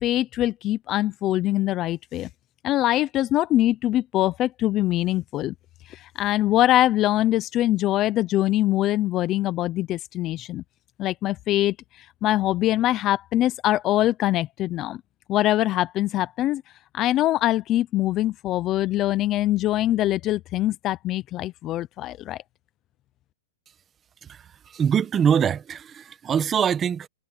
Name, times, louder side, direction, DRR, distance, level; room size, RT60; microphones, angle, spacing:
voice 1, 0.0-2.3 2.6-5.5 5.9-10.6 11.0-15.0 15.3-16.6 16.9-22.4, left 14 dB, 20° left, 0.5 m, -23 dB
voice 2, 24.2-27.1, right 8 dB, 15° right, 1.1 m, -24 dB
supercardioid pair, 170°, 0 cm